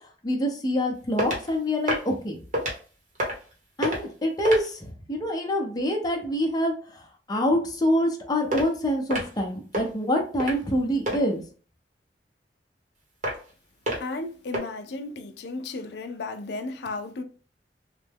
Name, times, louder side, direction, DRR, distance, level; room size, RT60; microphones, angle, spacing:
voice 1, 0.2-2.4 3.8-11.4, equal, 20° left, 0.7 m, -26 dB
sound 1, 1.2-1.5 1.8-2.1 2.5-2.8 3.1-3.5 3.8-4.1 4.4-4.7 8.5-8.7 9.1-9.4 9.7-9.9 10.4-10.7 11.1-11.2 13.2-13.5 13.9-14.1 14.5-14.6, equal, 45° right, 1.0 m, -28 dB
voice 2, 14.0-17.2, left 3 dB, 65° left, 0.4 m, -34 dB
3.2 x 2.2 x 3.4 m
head